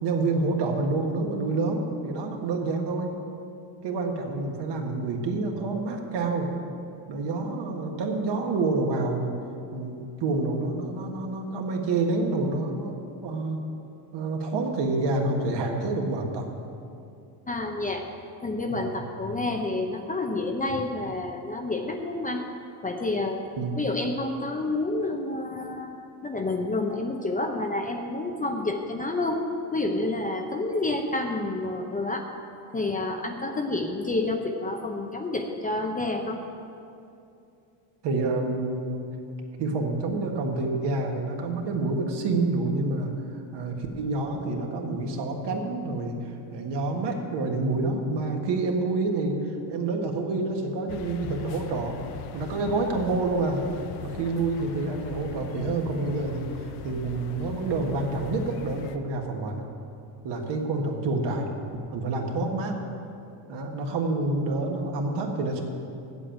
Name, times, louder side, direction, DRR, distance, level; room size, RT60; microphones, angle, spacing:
voice 1, 0.0-3.2 3.8-6.5 7.1-9.3 9.7-12.9 13.2-13.6 14.1-16.5 18.7-19.0 23.6-23.8 38.0-39.0 39.6-43.1 43.5-52.0 52.3-53.7 54.0-59.6 60.2-61.5 61.9-62.8 63.5-65.6, right 3 dB, 55° right, 2 dB, 1.7 m, -28 dB
voice 2, 17.5-18.0 18.4-22.4 22.8-23.4 23.7-29.4 29.7-32.3 32.7-36.4, left 2 dB, 15° left, 3 dB, 0.6 m, -29 dB
sound 1, 50.9-59.0, left 7 dB, 85° left, 0.9 m, -40 dB
8.0 x 7.7 x 8.8 m, 2.6 s
cardioid pair, 120°, 49 cm